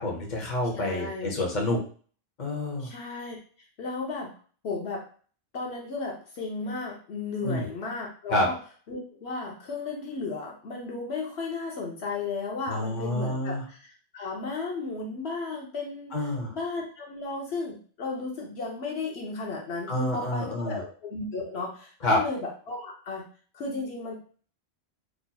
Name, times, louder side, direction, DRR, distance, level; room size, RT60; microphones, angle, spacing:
voice 1, 0.0-1.8 2.4-2.9 7.4-7.6 8.3-8.5 12.7-13.6 16.1-16.5 19.9-20.8 22.0-22.2, left 1 dB, 45° left, -1 dB, 1.1 m, -28 dB
voice 2, 0.8-1.4 2.8-3.4 3.8-4.3 4.6-5.0 5.5-8.6 8.9-23.2 23.5-24.1, left 3 dB, 75° left, -1 dB, 1.1 m, -34 dB
4.1 x 3.0 x 2.3 m, 0.42 s
omnidirectional pair, 1.1 m